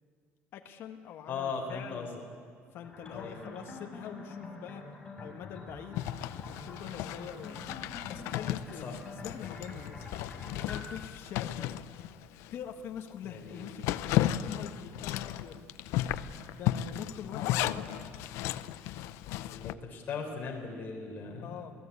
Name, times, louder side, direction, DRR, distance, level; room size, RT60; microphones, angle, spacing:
voice 1, 0.5-2.1 2.7-4.9 5.2-7.8 8.1-10.0 10.6-11.8 12.5-15.6 16.5-18.1 21.4-21.7, left 8 dB, 60° left, 4 dB, 1.5 m, -44 dB
voice 2, 1.3-2.2 3.1-3.4 8.8-8.9 13.2-13.7 17.4-17.9 19.5-21.6, left 5 dB, 40° left, 0 dB, 4.0 m, -38 dB
sound 1, 2.8-11.0, left 2 dB, 15° left, 5.1 m, -46 dB
Zipper (clothing), 5.9-12.6 13.0-13.1 13.5-19.7, left 13 dB, 90° left, 0.7 m, -34 dB
28.0 x 17.0 x 8.4 m, 2.2 s
cardioid pair, 145°, 5 cm